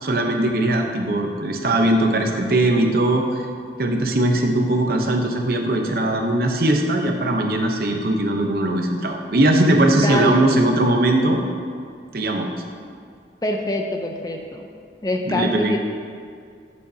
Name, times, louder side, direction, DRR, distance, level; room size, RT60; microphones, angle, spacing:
voice 1, 0.0-3.4 3.8-11.4 12.1-12.5 15.2-15.7, right 1 dB, 55° right, 2 dB, 0.9 m, -20 dB
voice 2, 10.0-10.4 13.4-14.7 15.0-15.8, left 1 dB, 20° left, 3 dB, 0.6 m, -24 dB
14.0 x 6.4 x 2.8 m, 2.2 s
head